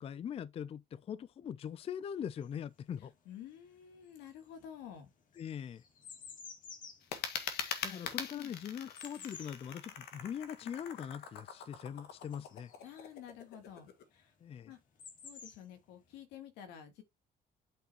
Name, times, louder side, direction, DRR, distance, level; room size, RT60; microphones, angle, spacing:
voice 1, 0.0-3.1 5.4-5.8 7.8-12.7 14.4-14.7, left 8 dB, 35° left, 0.4 m, -42 dB
sound 1, 2.4-3.6 3.9-13.2 14.2-14.3 14.5-16.1, left 5 dB, 50° left, 2.1 m, -53 dB
voice 2, 3.3-5.1 7.9-8.1 8.3-8.5 12.8-14.3 14.7-14.8 15.2-17.0, left 9 dB, 90° left, 2.5 m, -50 dB
sound 2, 7.0-14.0, left 7 dB, 75° left, 1.8 m, -43 dB
8.8 x 5.5 x 2.9 m
cardioid pair, 110°, 17 cm